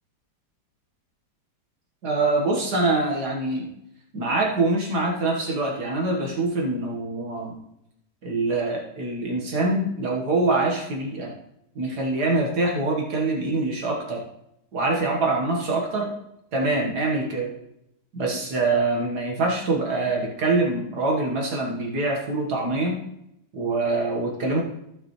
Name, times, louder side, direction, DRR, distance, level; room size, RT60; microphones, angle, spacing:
voice 1, 2.0-3.7 4.1-7.6 8.2-11.3 11.8-14.2 14.7-16.1 16.5-17.5 18.1-23.0 23.5-24.6, right 2 dB, 65° right, -1 dB, 2.0 m, -24 dB
14.5 x 5.8 x 3.1 m, 0.81 s
omnidirectional pair, 1.9 m